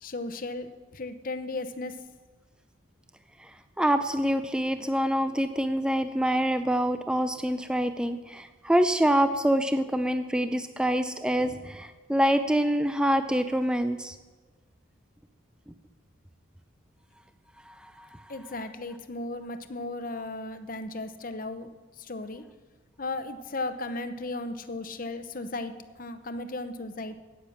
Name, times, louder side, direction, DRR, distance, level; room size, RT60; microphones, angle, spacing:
voice 1, 0.0-2.0 18.3-22.4 23.0-27.2, left 2 dB, 40° left, 10 dB, 0.7 m, -36 dB
voice 2, 3.8-14.2 17.7-18.2, equal, 5° right, 9 dB, 0.4 m, -26 dB
10.0 x 8.9 x 7.1 m, 1.3 s
head